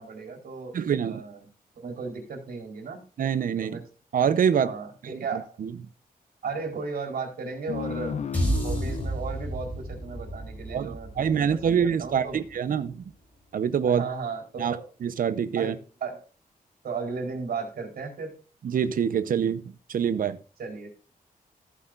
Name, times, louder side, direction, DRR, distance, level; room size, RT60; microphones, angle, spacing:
voice 1, 0.0-1.5 1.8-3.0 3.6-3.8 4.6-5.5 6.4-8.2 8.6-12.4 13.9-14.9 15.6-16.2 16.8-18.4 20.6-20.9, right 4 dB, 90° right, 2 dB, 4.2 m, -35 dB
voice 2, 0.7-1.2 3.2-3.8 4.1-4.7 5.3-5.7 10.7-13.0 13.5-14.1 14.6-14.8 15.0-15.8 18.6-19.6 19.9-20.4, right 8 dB, 65° right, 13 dB, 0.8 m, -25 dB
sound 1, 7.7-10.8, left 7 dB, 50° left, 0.5 m, -35 dB
sound 2, 8.3-12.7, right 1 dB, 10° left, 4.3 m, -32 dB
15.0 x 8.4 x 2.5 m, 0.36 s
wide cardioid pair, 175°, 15 cm